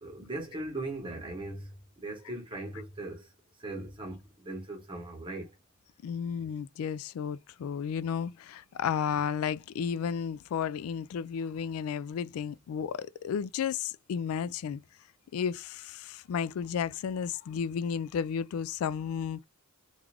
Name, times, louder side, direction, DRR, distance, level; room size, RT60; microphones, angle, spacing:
voice 1, 0.0-3.3 3.6-5.5, right 2 dB, 25° right, 1.1 m, -39 dB
voice 2, 6.0-14.8 15.3-19.4, left 7 dB, 75° left, 0.3 m, -33 dB
3.4 x 2.4 x 3.3 m
head